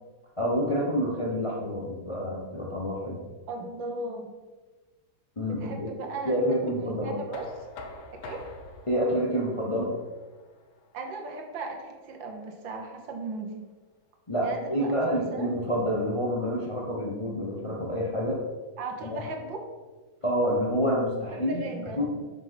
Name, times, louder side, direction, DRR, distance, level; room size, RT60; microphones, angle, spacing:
voice 1, 0.4-3.2 5.4-5.9 6.2-7.1 8.9-9.9 14.3-18.4 20.2-21.6 22.0-22.2, equal, 60° left, -3 dB, 0.3 m, -28 dB
voice 2, 3.5-4.3 5.6-6.4 6.7-7.5 8.2-8.5 10.9-13.6 14.4-15.5 18.8-19.7 21.3-22.0, right 3 dB, 70° right, 3 dB, 1.6 m, -37 dB
Knock, 7.3-13.1, left 2 dB, 90° left, 1.7 m, -47 dB
5.3 x 5.2 x 5.7 m, 1.3 s
omnidirectional pair, 2.2 m